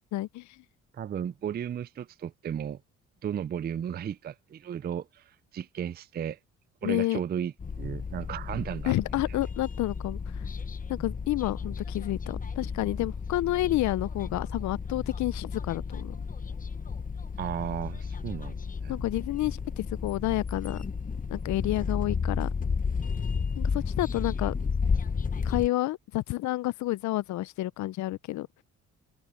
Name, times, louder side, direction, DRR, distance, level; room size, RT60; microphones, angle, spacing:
voice 1, 0.1-0.6 6.8-7.2 8.9-10.4 10.9-16.1 18.9-20.8 21.3-22.5 23.6-24.5 25.4-28.5, left 16 dB, 70° left, 0.5 m, -30 dB
voice 2, 0.9-2.8 3.2-6.4 6.8-8.9 9.3-9.4 17.4-18.6 18.8-18.9, right 9 dB, 35° right, 0.4 m, -34 dB
sound 1, 7.6-25.7, left 5 dB, 30° left, 1.0 m, -33 dB
cardioid pair, 90°, 30 cm